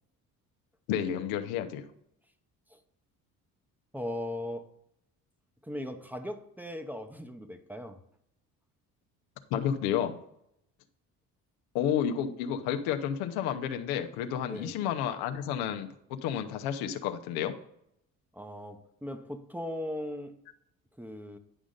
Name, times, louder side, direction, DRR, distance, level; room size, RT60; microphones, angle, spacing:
voice 1, 0.9-1.8 9.5-10.2 11.7-15.9 16.2-17.5, left 9 dB, 90° left, 0.8 m, -31 dB
voice 2, 3.9-4.7 5.6-8.0 14.4-14.7 18.3-20.4 21.0-21.4, left 1 dB, 5° right, 0.8 m, -38 dB
9.9 x 5.1 x 3.9 m
supercardioid pair, 90°, 36 cm